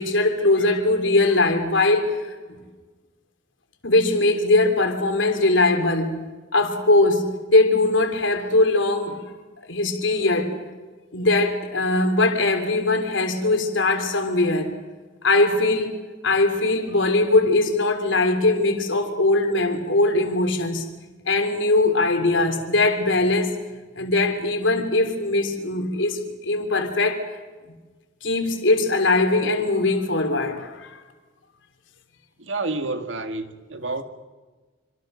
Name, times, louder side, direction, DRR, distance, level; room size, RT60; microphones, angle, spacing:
voice 1, 0.0-2.1 2.5-2.6 3.8-6.2 6.5-9.2 9.7-10.5 11.1-14.7 15.2-16.0 16.2-20.9 21.3-23.6 24.0-27.2 28.2-30.8, left 2 dB, 85° left, 3.3 m, -21 dB
voice 2, 32.4-34.0, right 3 dB, 85° right, 2.1 m, -29 dB
26.5 x 26.0 x 6.5 m
head